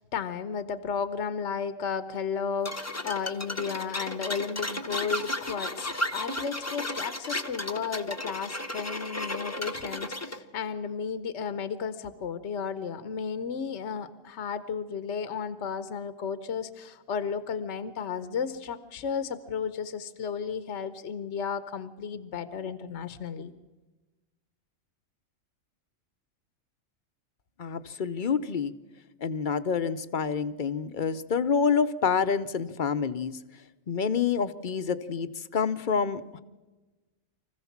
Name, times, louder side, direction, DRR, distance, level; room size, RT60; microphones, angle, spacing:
voice 1, 0.0-23.5, left 6 dB, 65° left, 12 dB, 1.1 m, -33 dB
sound 1, 2.6-10.4, left 1 dB, 15° left, 0.8 m, -34 dB
voice 2, 27.6-28.7 29.2-33.4 33.9-36.4, left 6 dB, 45° left, 12 dB, 0.8 m, -27 dB
24.5 x 15.5 x 7.2 m, 1.2 s
omnidirectional pair, 1.4 m